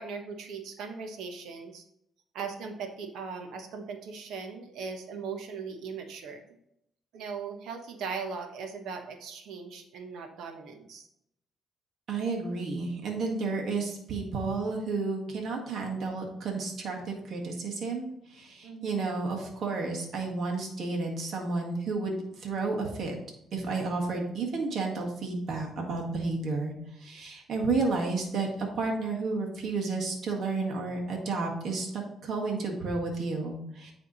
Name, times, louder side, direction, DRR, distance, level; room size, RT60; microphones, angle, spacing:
voice 1, 0.0-1.8 2.3-6.4 7.1-11.1 18.6-19.1, right 5 dB, 80° right, 5 dB, 1.0 m, -39 dB
voice 2, 12.1-23.2 23.5-33.9, right 3 dB, 60° right, 0 dB, 1.8 m, -31 dB
9.5 x 3.6 x 4.1 m, 0.77 s
cardioid pair, 105°, 0 cm